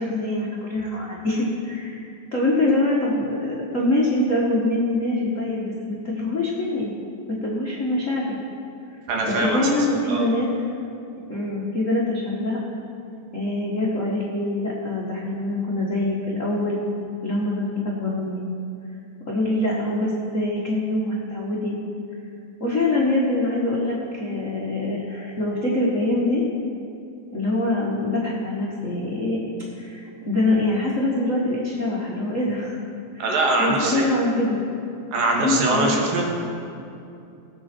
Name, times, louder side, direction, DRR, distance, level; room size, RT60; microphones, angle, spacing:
voice 1, 0.0-6.9 7.3-8.4 9.2-10.5 11.3-12.6 13.3-16.8 17.2-18.4 19.3-21.8 22.6-26.4 27.3-29.4 29.8-32.8 33.1-34.6 35.4-36.0, left 2 dB, 55° left, -5 dB, 0.8 m, -24 dB
voice 2, 9.1-9.6 10.1-10.3 33.2-34.0 35.1-36.2, right 2 dB, 80° right, -1 dB, 3.4 m, -22 dB
19.5 x 8.3 x 4.4 m, 2.6 s
omnidirectional pair, 4.0 m